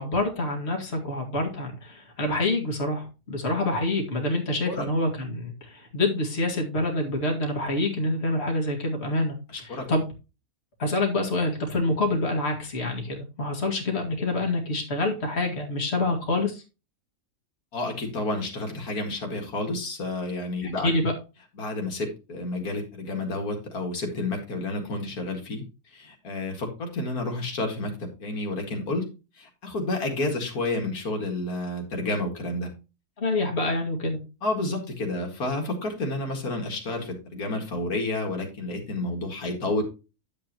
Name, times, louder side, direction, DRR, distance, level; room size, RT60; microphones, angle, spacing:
voice 1, 0.0-10.0 10.8-16.6 20.6-21.1 33.2-34.2, left 2 dB, 45° left, 1 dB, 2.3 m, -27 dB
voice 2, 9.5-9.9 17.7-20.9 21.6-25.6 25.9-29.1 29.4-32.7 34.4-39.8, left 2 dB, 90° left, 2 dB, 2.6 m, -30 dB
10.0 x 7.6 x 3.0 m, 0.30 s
omnidirectional pair, 1.5 m